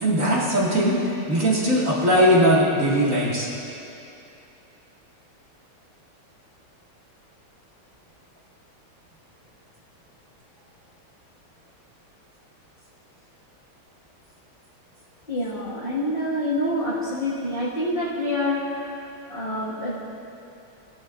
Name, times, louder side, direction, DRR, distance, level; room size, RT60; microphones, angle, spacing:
voice 1, 0.0-3.5, equal, 40° right, -6 dB, 2.2 m, -20 dB
voice 2, 15.3-18.9 19.3-19.9, left 1 dB, 30° left, -10 dB, 1.6 m, -26 dB
18.0 x 11.0 x 2.5 m, 2.8 s
omnidirectional pair, 2.4 m